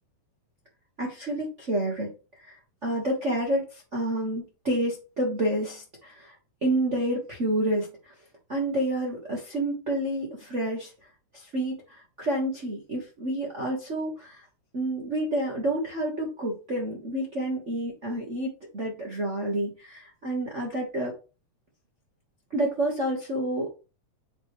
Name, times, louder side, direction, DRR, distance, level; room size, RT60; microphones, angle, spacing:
voice 1, 1.0-2.1 2.4-6.3 6.6-8.1 8.5-14.4 14.7-21.1 22.5-23.7, right 1 dB, 55° right, -1 dB, 0.8 m, -29 dB
9.2 x 3.6 x 3.1 m, 0.32 s
omnidirectional pair, 3.6 m